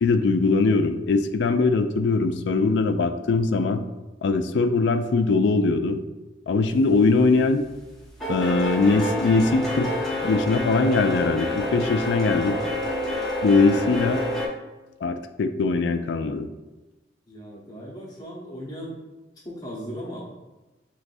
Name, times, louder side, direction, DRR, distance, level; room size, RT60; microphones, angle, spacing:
voice 1, 0.0-3.8 4.2-6.0 6.5-7.6 8.3-12.6 13.4-14.2 15.0-16.5, left 3 dB, 75° left, 9 dB, 0.4 m, -21 dB
sound 1, 6.9-7.3 7.6-14.5, left 1 dB, 5° left, 1.0 m, -28 dB
voice 2, 17.3-18.9 19.4-20.3, equal, 20° left, -5 dB, 0.9 m, -37 dB
5.9 x 3.1 x 2.6 m, 1.1 s
head